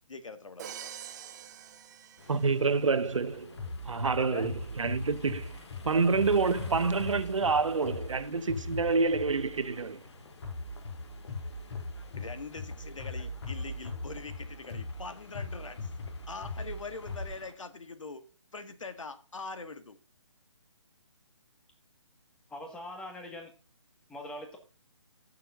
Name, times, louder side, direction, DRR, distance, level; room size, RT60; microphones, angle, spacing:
voice 1, 0.1-0.9 4.2-4.5 12.2-15.9 16.3-18.2 18.5-20.0, left 3 dB, 85° left, 1.7 m, -43 dB
Crash cymbal, 0.6-2.8, right 9 dB, 35° right, 0.9 m, -45 dB
sound 1, 2.2-17.5, left 3 dB, 60° left, 2.0 m, -51 dB
voice 2, 2.3-3.6 3.8-5.5 5.8-10.0, right 4 dB, 85° right, 1.2 m, -28 dB
sound 2, 3.6-9.6 10.4-17.3, left 2 dB, 45° left, 5.3 m, -40 dB
voice 3, 22.5-23.5 24.1-24.6, left 1 dB, 5° left, 1.6 m, -42 dB
17.5 x 6.8 x 2.5 m
hypercardioid pair, 155°, 16 cm